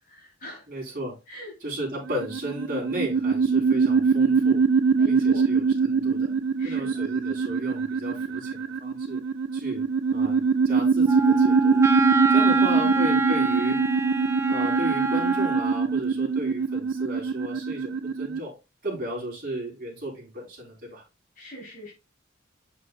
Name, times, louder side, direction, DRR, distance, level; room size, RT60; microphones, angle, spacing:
voice 1, 0.0-0.7 1.3-1.5 4.9-5.5 6.6-7.0 12.2-13.1 21.4-21.9, right 1 dB, 45° left, 3.5 m, -40 dB
voice 2, 0.7-1.2 1.6-4.6 5.1-6.3 6.6-9.2 9.5-9.8 10.1-10.4 10.6-11.8 12.3-13.8 14.5-18.5 18.8-21.0, right 1 dB, 45° right, 4.0 m, -34 dB
sound 1, 2.1-18.4, right 5 dB, 85° right, 0.5 m, -23 dB
Wind instrument woodwind instrument, 11.0-15.9, right 2 dB, 15° right, 1.0 m, -26 dB
8.6 x 6.2 x 2.4 m
head